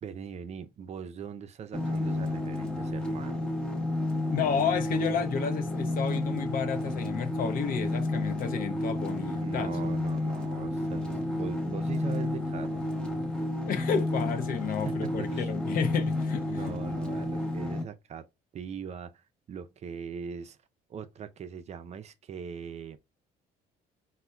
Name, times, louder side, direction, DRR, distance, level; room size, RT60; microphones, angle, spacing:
voice 1, 0.0-3.5 9.3-12.9 14.8-15.5 16.5-18.3 18.5-20.6 20.9-23.0, right 7 dB, 40° right, 0.4 m, -40 dB
sound 1, 1.7-17.8, left 1 dB, 5° left, 0.7 m, -31 dB
voice 2, 4.3-9.8 13.7-16.6, left 6 dB, 55° left, 0.6 m, -31 dB
4.1 x 2.1 x 2.3 m
cardioid pair, 110°, 17 cm